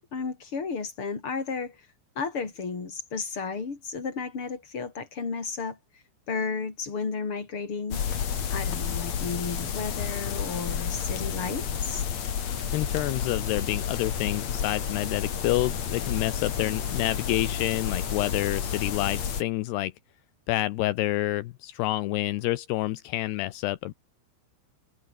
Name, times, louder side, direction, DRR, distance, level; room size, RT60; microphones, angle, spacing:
voice 1, 0.1-1.9 2.1-12.0, left 5 dB, 30° left, 4.6 m, -33 dB
sound 1, 7.9-19.4, left 8 dB, 45° left, 2.7 m, -31 dB
voice 2, 12.7-19.9 20.5-23.9, left 16 dB, 80° left, 2.5 m, -28 dB
omnidirectional pair, 5.7 m